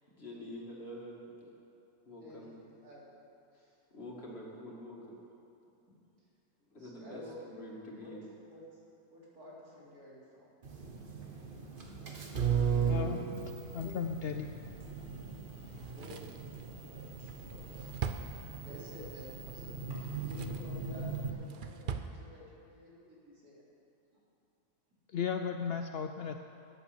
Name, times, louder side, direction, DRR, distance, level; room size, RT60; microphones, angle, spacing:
voice 1, 0.2-1.5 2.1-2.5 3.9-5.1 6.7-7.2 7.5-8.3, left 1 dB, 40° left, -4 dB, 2.6 m, -46 dB
voice 2, 2.2-3.1 3.6-3.8 5.9-6.0 6.8-7.6 8.0-8.1 8.5-8.8 9.1-10.5 15.6-16.4 16.7-23.6, left 1 dB, 75° right, -6 dB, 3.6 m, -52 dB
sound 1, 10.6-21.3, right 6 dB, 35° right, 1.3 m, -37 dB
voice 3, 12.9-13.2 13.7-14.5 25.1-26.4, left 7 dB, 80° left, 6 dB, 0.5 m, -35 dB
Drawer open or close, 15.7-19.0 19.8-20.8 21.1-22.2 22.5-22.6, right 6 dB, 55° right, 0.5 m, -42 dB
14.0 x 8.9 x 6.8 m, 2.8 s
omnidirectional pair, 1.6 m